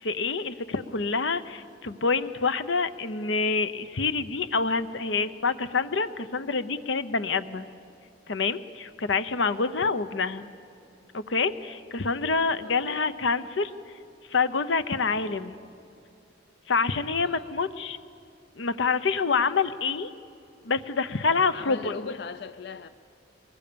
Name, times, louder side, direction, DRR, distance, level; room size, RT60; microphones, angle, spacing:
voice 1, 0.0-7.7 8.3-10.5 11.1-13.7 14.3-15.6 16.7-18.0 18.6-20.1 20.6-21.9, left 4 dB, 90° left, 12 dB, 0.9 m, -27 dB
voice 2, 12.6-13.0 17.2-17.5 21.5-22.9, left 5 dB, 60° left, 12 dB, 0.4 m, -39 dB
23.5 x 20.5 x 7.0 m, 2.6 s
head